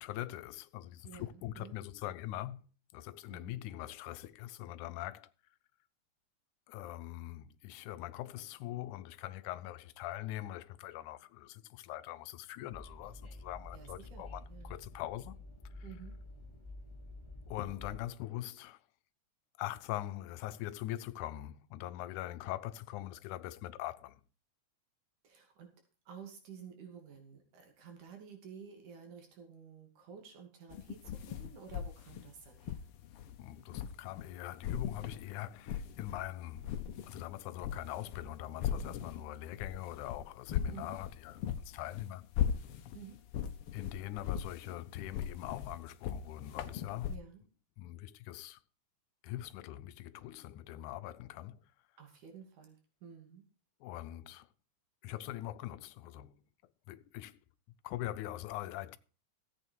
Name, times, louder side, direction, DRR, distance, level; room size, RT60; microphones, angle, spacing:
voice 1, 0.0-2.7 2.9-5.3 6.7-15.4 15.7-15.9 17.5-18.8 19.6-24.2 33.4-36.7 37.1-42.2 43.7-47.1 47.8-48.6 49.2-51.6 53.8-54.5 55.0-56.4 56.9-57.4 57.8-59.0, left 14 dB, 85° left, 2.2 m, -42 dB
voice 2, 1.0-1.8 3.3-3.5 13.7-14.7 15.8-16.1 25.2-25.7 26.1-32.8 40.7-41.0 42.9-43.2 47.1-47.4 52.0-53.4, right 7 dB, 90° right, 4.1 m, -52 dB
Train, 12.7-18.1, left 2 dB, 15° left, 1.0 m, -49 dB
sound 1, 30.7-34.3 34.6-36.2 36.5-47.2, left 9 dB, 65° left, 1.6 m, -39 dB
14.0 x 8.7 x 4.5 m
omnidirectional pair, 3.4 m